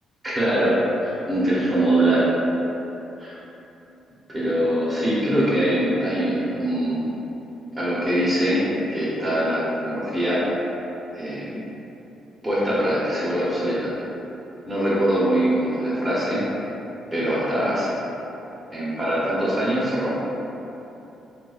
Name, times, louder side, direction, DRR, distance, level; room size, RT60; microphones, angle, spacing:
voice 1, 0.2-2.3 3.2-3.3 4.3-7.2 7.8-8.6 8.9-10.4 11.1-11.7 12.4-13.9 14.7-16.4 17.1-17.9 18.7-20.2, right 1 dB, 10° right, -9 dB, 0.8 m, -23 dB
2.4 x 2.2 x 3.9 m, 3.0 s
cardioid pair, 90°, 0 cm